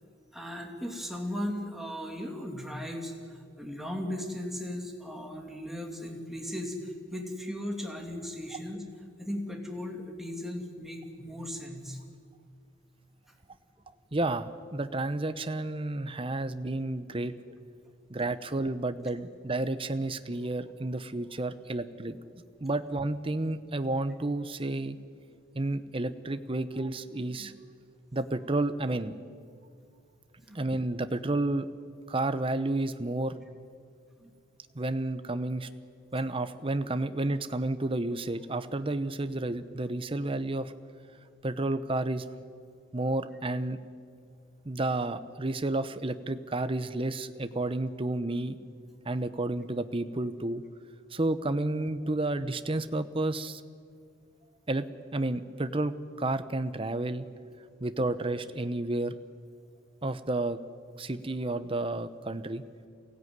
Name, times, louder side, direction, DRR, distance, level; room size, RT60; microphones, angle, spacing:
voice 1, 0.3-8.9 9.2-12.0 30.5-30.6 34.2-34.3, left 1 dB, ahead, 1 dB, 2.6 m, -37 dB
voice 2, 14.1-17.5 18.1-25.0 25.5-27.5 28.1-29.1 30.5-31.7 32.1-33.4 34.7-35.7 36.1-40.7 41.4-42.2 42.9-43.8 44.6-48.6 49.0-50.6 51.1-53.6 54.7-57.3 57.8-59.2 60.0-60.6 61.0-62.6, right 2 dB, 25° right, 11 dB, 0.8 m, -31 dB
23.0 x 17.0 x 9.5 m, 2.2 s
head